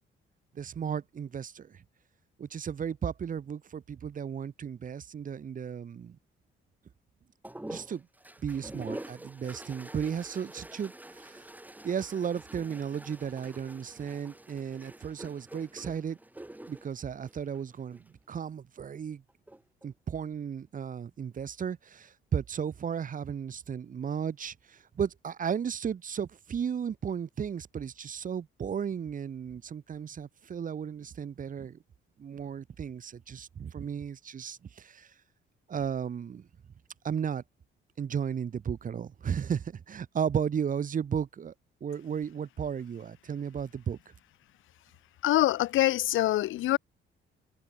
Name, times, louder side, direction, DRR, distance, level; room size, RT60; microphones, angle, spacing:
voice 1, 0.5-1.8 2.4-6.2 7.7-8.1 8.4-11.4 11.8-16.2 16.7-19.2 19.8-31.8 32.2-35.1 35.7-36.5 37.0-37.4 38.0-41.5 41.8-44.0, right 7 dB, 45° right, 0.9 m, -34 dB
sound 1, 7.4-18.1 19.3-19.9, right 1 dB, 10° right, 2.6 m, -46 dB
voice 2, 45.2-46.8, left 15 dB, 80° left, 1.1 m, -25 dB
cardioid pair, 90°, 20 cm